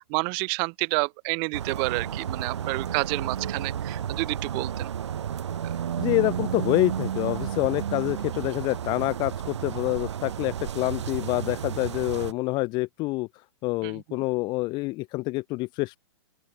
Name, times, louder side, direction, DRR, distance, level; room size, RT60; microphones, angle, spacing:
voice 1, 0.1-4.9 13.8-14.0, right 37 dB, 35° right, 0.8 m, -29 dB
sound 1, 1.5-12.3, right 9 dB, 75° right, 3.7 m, -32 dB
voice 2, 6.0-13.3 13.6-16.0, left 22 dB, 30° left, 1.3 m, -27 dB
open air
hypercardioid pair, 140°, 15 cm